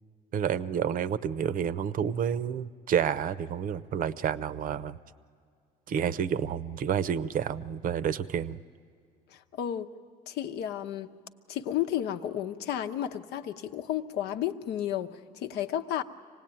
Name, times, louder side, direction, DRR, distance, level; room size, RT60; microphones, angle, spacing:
voice 1, 0.3-5.0 5.9-8.6, right 8 dB, 55° right, 15 dB, 0.7 m, -29 dB
voice 2, 9.3-9.9 10.3-11.1 11.5-16.0, left 11 dB, 80° left, 6 dB, 0.9 m, -32 dB
25.5 x 18.0 x 9.0 m, 2.2 s
cardioid pair, 110°, 17 cm